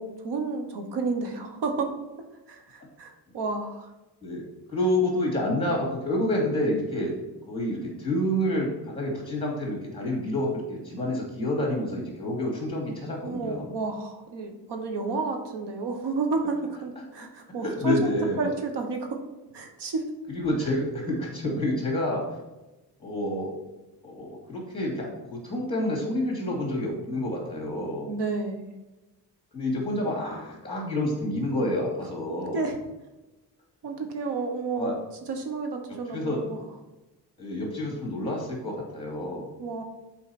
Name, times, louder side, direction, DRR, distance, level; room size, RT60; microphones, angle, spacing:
voice 1, 0.0-1.9 2.5-3.9 13.2-19.1 19.5-20.0 28.1-28.7 32.5-32.8 33.8-35.0 35.3-36.6 39.6-39.8, right 3 dB, 80° right, 4 dB, 1.2 m, -31 dB
voice 2, 4.2-7.2 7.5-13.7 17.0-18.5 20.3-22.2 23.0-23.5 24.0-28.1 29.5-32.7 34.7-34.9 36.1-36.4 37.4-39.5, left 1 dB, 15° left, -1 dB, 2.5 m, -29 dB
7.7 x 4.6 x 4.2 m, 1.1 s
cardioid pair, 150°, 41 cm